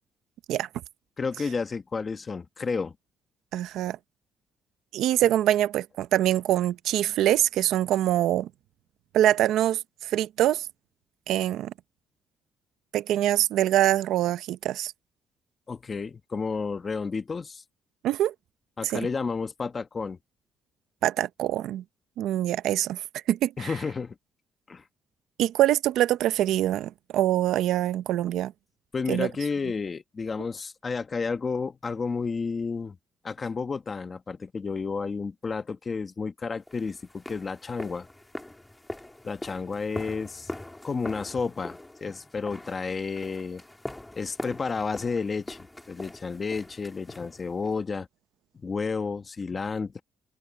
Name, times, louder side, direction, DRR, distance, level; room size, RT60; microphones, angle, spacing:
voice 1, 1.2-2.9 15.7-17.6 18.8-20.2 23.6-24.1 24.7-24.8 28.9-33.0 33.2-38.1 39.2-40.5 40.8-43.6 44.2-48.1 48.5-50.0, left 4 dB, 25° left, 1.2 m, -31 dB
voice 2, 3.5-4.0 4.9-8.5 9.1-10.7 11.3-11.7 12.9-14.9 18.0-18.3 18.8-19.1 21.0-21.8 22.2-23.0 23.3-23.7 25.4-28.5 29.1-29.3, right 13 dB, 75° right, 0.6 m, -24 dB
sound 1, 36.7-47.8, left 1 dB, 10° left, 2.8 m, -42 dB
open air
cardioid pair, 145°, 0 cm